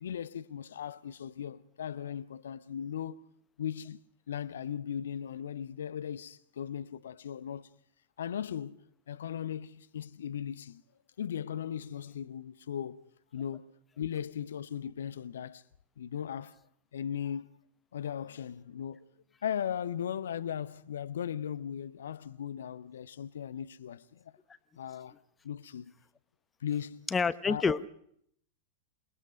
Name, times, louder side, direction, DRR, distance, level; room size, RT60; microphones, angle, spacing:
voice 1, 0.0-3.2 3.6-4.0 4.3-7.7 8.2-8.8 9.1-10.8 11.2-13.6 14.0-15.6 16.0-16.5 16.9-17.5 17.9-19.1 19.4-24.3 24.8-25.1 25.4-25.9 26.6-27.1 27.4-27.6, left 9 dB, 65° left, 0.8 m, -37 dB
voice 2, 27.1-27.9, left 5 dB, 15° left, 0.9 m, -27 dB
28.0 x 21.0 x 5.4 m
figure-of-eight pair, 90°, 0 cm